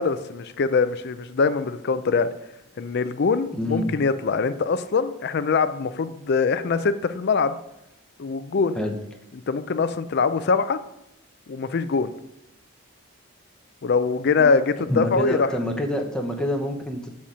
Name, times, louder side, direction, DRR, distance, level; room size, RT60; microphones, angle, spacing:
voice 1, 0.0-2.3 2.8-7.6 8.2-8.8 9.3-10.8 11.5-12.1 13.8-15.5, left 4 dB, 50° left, 12 dB, 0.4 m, -23 dB
voice 2, 3.5-3.9 8.8-9.0 14.9-17.1, equal, 5° left, 1 dB, 0.8 m, -27 dB
7.6 x 4.2 x 4.9 m, 0.85 s
head